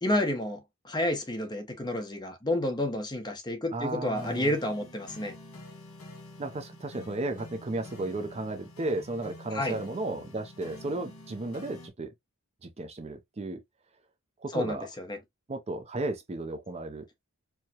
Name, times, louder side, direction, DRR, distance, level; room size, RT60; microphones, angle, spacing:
voice 1, 0.0-0.6 0.8-5.3 9.5-9.8 14.5-15.2, left 1 dB, 20° left, 0.9 m, -30 dB
voice 2, 3.7-4.5 6.4-12.1 12.6-13.6 14.4-14.9 15.5-17.0, right 2 dB, 30° right, 0.5 m, -34 dB
sound 1, 4.1-11.9, left 1 dB, 80° left, 1.3 m, -48 dB
4.6 x 2.2 x 2.8 m
head